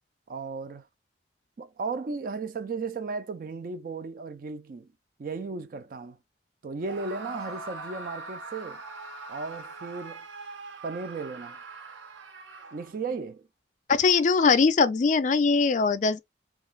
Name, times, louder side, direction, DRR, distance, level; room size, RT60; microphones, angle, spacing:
voice 1, 0.3-0.9 1.6-4.9 5.2-6.2 6.6-8.8 9.3-10.2 10.8-11.6 12.7-13.5, right 4 dB, 50° right, 0.3 m, -35 dB
Screaming, 6.8-13.1, right 4 dB, 85° right, 0.7 m, -42 dB
sound 1, 7.2-9.9, left 3 dB, 5° left, 0.7 m, -47 dB
voice 2, 13.9-16.2, left 4 dB, 40° left, 0.3 m, -21 dB
2.4 x 2.3 x 3.1 m
head